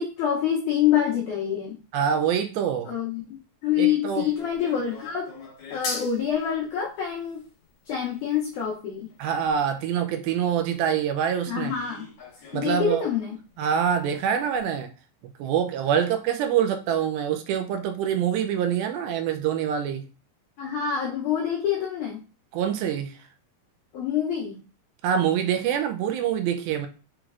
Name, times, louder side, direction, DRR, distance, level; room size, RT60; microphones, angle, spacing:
voice 1, 0.0-1.8 2.9-3.4 3.6-5.3 5.7-7.4 7.8-9.1 11.5-12.1 12.5-13.4 20.6-22.2 23.9-24.6, left 8 dB, 90° left, 1.7 m, -26 dB
voice 2, 1.9-2.9 3.8-4.2 9.2-11.7 12.5-13.0 13.6-14.9 15.4-20.0 22.5-23.2 25.0-26.9, right 8 dB, 80° right, 2.3 m, -25 dB
sound 1, 4.1-9.9 10.4-10.5 10.9-11.0 11.7-12.8 13.1-13.2 13.5-13.6 14.2-14.3 14.5-14.6, left 3 dB, 55° left, 2.5 m, -40 dB
6.2 x 3.1 x 2.3 m
omnidirectional pair, 4.4 m